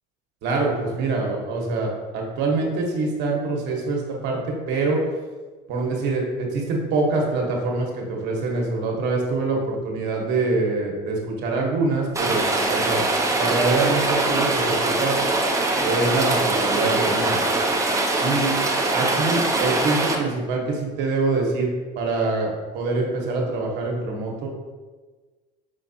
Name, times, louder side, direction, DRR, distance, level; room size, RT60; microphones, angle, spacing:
voice 1, 0.4-5.0 5.7-13.0 13.4-15.2 15.8-17.4 18.2-18.6 18.9-21.7 22.0-24.5, right 3 dB, 60° right, 0 dB, 1.1 m, -25 dB
Rain, 12.2-20.2, right 2 dB, 15° right, 0.6 m, -22 dB
5.4 x 3.2 x 2.7 m, 1.4 s
supercardioid pair, 100°, 20 cm